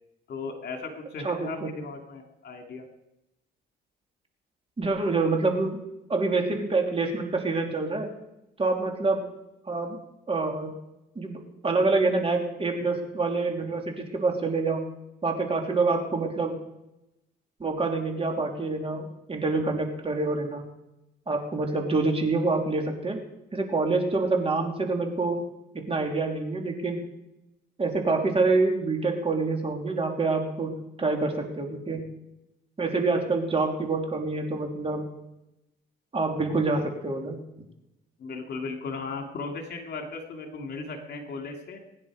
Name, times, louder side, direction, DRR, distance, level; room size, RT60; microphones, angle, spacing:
voice 1, 0.3-2.9 38.2-41.8, left 4 dB, 60° left, 3 dB, 2.7 m, -36 dB
voice 2, 1.2-1.7 4.8-5.8 6.1-8.1 8.6-9.2 9.7-10.0 10.3-10.7 11.1-14.8 15.2-16.5 17.6-20.6 21.3-23.2 23.5-25.4 25.7-27.0 27.8-30.7 31.0-32.0 32.8-35.0 36.1-37.4, right 3 dB, 30° right, 2 dB, 3.2 m, -26 dB
21.0 x 10.0 x 5.0 m, 0.90 s
cardioid pair, 90°, 20 cm